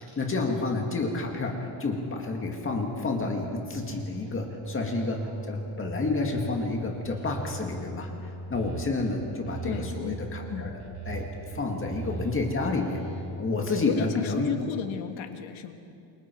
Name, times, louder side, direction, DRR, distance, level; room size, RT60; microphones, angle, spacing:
voice 1, 0.0-5.2 5.5-13.0 13.4-14.5, left 3 dB, 25° left, 1 dB, 2.0 m, -30 dB
sound 1, 3.7-4.3 4.6-6.7 7.0-9.1 9.4-11.5 11.8-13.3, right 3 dB, 55° right, 4.2 m, -39 dB
voice 2, 9.6-10.7 13.7-15.7, left 8 dB, 75° left, 6 dB, 2.0 m, -34 dB
28.0 x 24.5 x 4.6 m, 2.5 s
cardioid pair, 170°, 48 cm